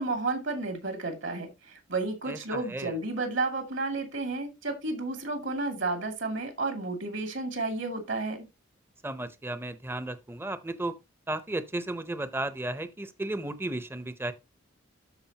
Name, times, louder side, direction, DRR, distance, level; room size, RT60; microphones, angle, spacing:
voice 1, 0.0-8.4, right 3 dB, 65° right, 2.5 m, -32 dB
voice 2, 2.3-2.9 9.0-10.9 11.3-14.3, right 2 dB, 10° right, 0.7 m, -34 dB
13.0 x 4.9 x 2.8 m
head